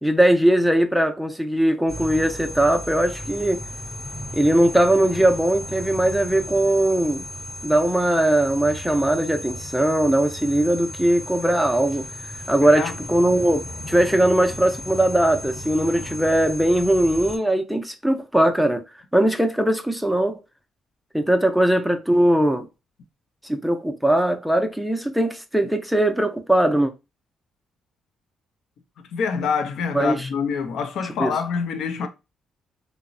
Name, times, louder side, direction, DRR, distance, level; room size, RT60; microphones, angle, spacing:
voice 1, 0.0-3.6 4.3-7.2 7.6-12.1 12.5-18.8 19.1-20.4 21.1-22.6 23.4-26.9 29.9-30.3 31.2-31.3, right 1 dB, ahead, 0.4 m, -20 dB
sound 1, 1.9-17.4, equal, 25° left, 0.7 m, -35 dB
voice 2, 12.6-12.9 29.0-32.1, left 6 dB, 75° left, 0.4 m, -26 dB
3.0 x 2.0 x 2.5 m
cardioid pair, 85°, 0 cm